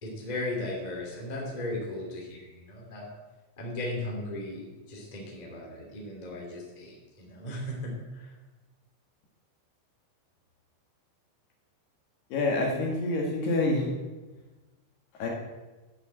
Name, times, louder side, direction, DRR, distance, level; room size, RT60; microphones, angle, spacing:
voice 1, 0.0-3.1 3.6-8.3, left 1 dB, 15° left, -2 dB, 1.6 m, -36 dB
voice 2, 12.3-13.9 15.2-15.3, left 2 dB, 60° left, -1 dB, 3.5 m, -27 dB
12.0 x 7.0 x 8.5 m, 1.2 s
omnidirectional pair, 5.8 m